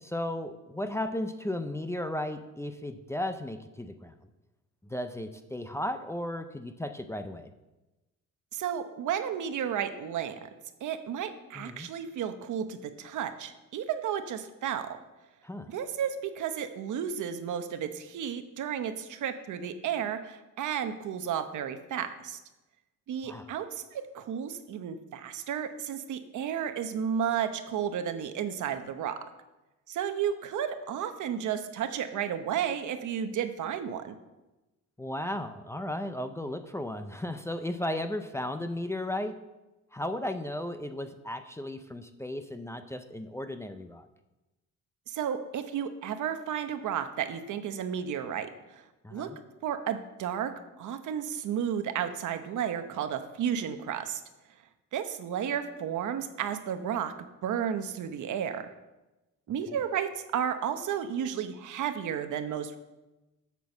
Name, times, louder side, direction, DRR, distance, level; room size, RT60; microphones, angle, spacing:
voice 1, 0.0-4.1 4.9-7.5 11.5-11.9 15.4-15.7 23.2-23.5 35.0-39.4 39.9-44.1 49.0-49.4 59.7-59.8, left 1 dB, 10° left, 8 dB, 0.5 m, -35 dB
voice 2, 8.5-10.5 10.8-14.9 15.7-22.4 23.1-29.2 29.9-34.1 45.1-48.8 49.1-49.3 49.6-50.5 50.8-54.2 54.9-57.1 57.4-58.7 59.5-62.8, right 8 dB, 75° right, 8 dB, 1.0 m, -32 dB
8.4 x 6.2 x 7.1 m, 1.1 s
cardioid pair, 130°, 30 cm